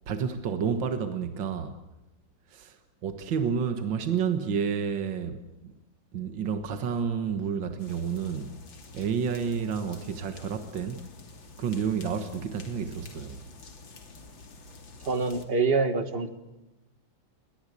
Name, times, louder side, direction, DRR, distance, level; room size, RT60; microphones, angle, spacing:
voice 1, 0.1-1.8 2.5-5.7 6.1-8.5 8.9-11.1 11.6-13.4, right 6 dB, 75° right, 2.1 m, -30 dB
sound 1, 7.8-15.4, left 3 dB, 80° left, 3.5 m, -49 dB
voice 2, 15.0-16.3, right 4 dB, 30° right, 1.8 m, -25 dB
29.0 x 23.5 x 8.3 m
omnidirectional pair, 2.0 m